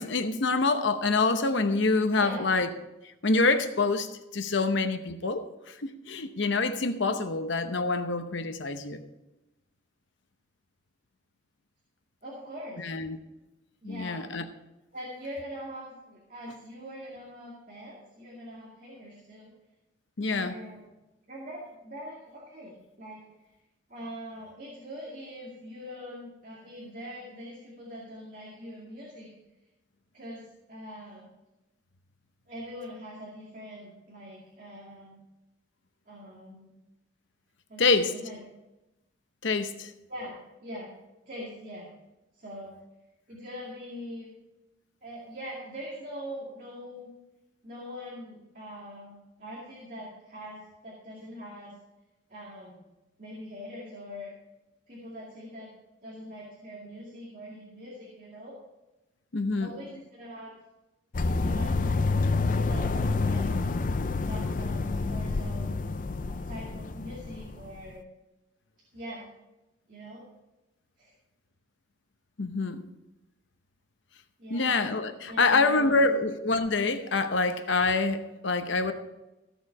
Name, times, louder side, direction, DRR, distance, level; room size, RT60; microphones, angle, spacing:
voice 1, 0.0-2.7 3.2-9.0 12.8-13.2 13.8-14.5 20.2-20.5 37.8-38.1 39.4-39.9 59.3-59.7 72.4-72.8 74.5-78.9, left 3 dB, 70° left, 9 dB, 0.8 m, -26 dB
voice 2, 2.1-2.5 12.2-12.9 13.8-14.3 14.9-19.5 20.4-20.8 21.3-23.3 23.9-29.3 30.1-31.3 32.5-35.2 36.1-36.7 37.7-38.4 40.1-40.3 40.6-40.9 41.3-41.9 42.3-42.7 43.3-44.3 45.0-47.1 47.6-49.1 49.4-51.7 52.3-52.8 53.2-54.3 54.9-55.7 56.0-58.5 59.6-60.5 61.3-62.0 62.3-63.4 64.2-65.8 66.3-68.1 68.9-69.2 69.9-70.2 71.0-71.1 74.4-74.7 75.3-76.2, equal, 40° right, -4 dB, 2.3 m, -42 dB
sound 1, 61.1-67.9, left 3 dB, 40° left, 0.4 m, -28 dB
15.0 x 7.1 x 4.8 m, 0.98 s
head